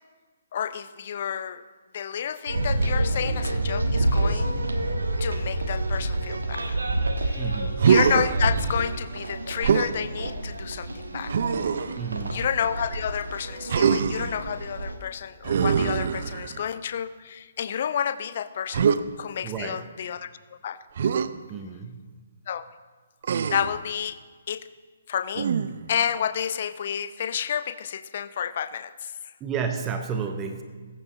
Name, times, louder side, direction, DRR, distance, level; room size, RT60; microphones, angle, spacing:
voice 1, 0.5-1.6 1.9-4.5 5.2-6.8 7.2-7.6 7.9-11.3 12.3-18.9 19.2-20.3 20.6-20.8 22.5-22.6 23.5-24.2 24.5-24.6 25.1-25.5 25.9-29.1, left 8 dB, 45° left, 13 dB, 0.5 m, -30 dB
sound 1, 2.5-14.9, right 1 dB, 70° right, 1.4 m, -28 dB
voice 2, 7.4-7.8 12.0-12.4 19.4-19.8 21.5-22.0 29.4-30.6, right 6 dB, 20° right, 6 dB, 0.8 m, -31 dB
Human voice, 7.8-8.4 9.6-10.0 11.3-12.0 13.7-14.3 15.4-16.7 18.7-19.0 21.0-21.3 23.2-23.8 25.3-25.9, right 7 dB, 45° right, 0.5 m, -23 dB
21.0 x 9.2 x 3.8 m, 1.4 s
figure-of-eight pair, 130°, 0 cm